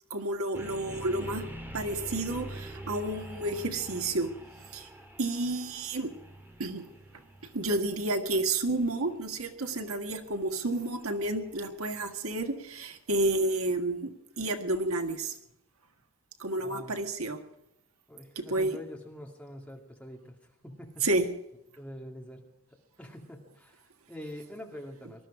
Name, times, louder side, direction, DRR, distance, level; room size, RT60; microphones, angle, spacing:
voice 1, 0.1-1.4 1.7-4.3 4.7-4.9 5.2-6.1 6.6-6.8 7.5-14.1 14.4-15.3 16.4-17.4 18.3-18.8 21.0-21.3, right 2 dB, 75° right, 6 dB, 1.6 m, -30 dB
sound 1, 0.5-12.5, right 1 dB, 10° right, 1.9 m, -46 dB
voice 2, 16.6-17.0 18.1-20.4 20.6-21.1 21.8-22.4 23.0-25.3, equal, 5° left, 1 dB, 2.2 m, -45 dB
19.5 x 13.0 x 4.9 m, 0.84 s
head